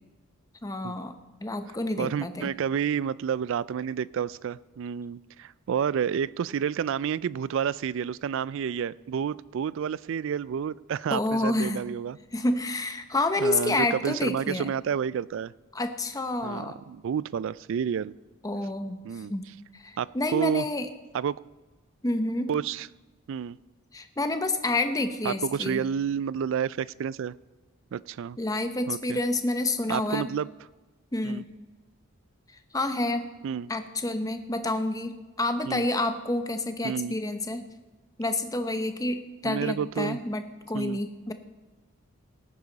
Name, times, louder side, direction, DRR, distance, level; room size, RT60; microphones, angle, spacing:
voice 1, 0.6-1.1 1.4-2.5 11.1-11.9 12.3-14.7 15.7-16.8 18.4-19.0 19.3-19.5 19.7-20.9 22.0-22.5 23.9-25.8 28.4-30.3 31.1-31.5 32.7-33.3 33.7-37.6 38.2-41.3, left 2 dB, 15° left, 8 dB, 0.7 m, -29 dB
voice 2, 2.0-12.2 13.4-15.5 16.4-18.2 19.0-19.3 20.0-20.7 21.1-21.4 22.5-22.9 23.3-23.6 25.2-27.3 27.9-28.4 28.9-29.2 29.9-30.5 31.2-31.4 33.4-33.7 35.6-35.9 36.8-37.1 39.4-40.2 40.7-41.0, right 7 dB, 60° right, 21 dB, 0.3 m, -30 dB
18.0 x 9.7 x 4.0 m, 1.2 s
head